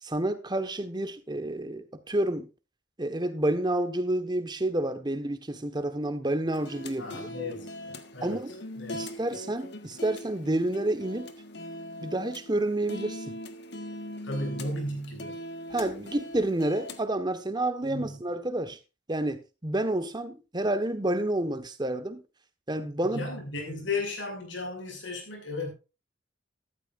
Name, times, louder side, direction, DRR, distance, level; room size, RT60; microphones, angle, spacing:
voice 1, 0.0-2.5 3.0-7.3 8.2-8.5 8.9-11.3 12.0-13.4 15.7-18.8 19.1-22.2 22.7-23.3, right 1 dB, 25° right, 1.3 m, -29 dB
sound 1, 6.5-17.0, left 1 dB, 60° left, 1.5 m, -41 dB
voice 2, 7.0-8.4 8.8-9.0 14.2-15.4 17.8-18.2 23.1-25.7, left 2 dB, 80° left, 6.1 m, -35 dB
14.0 x 13.0 x 2.5 m
head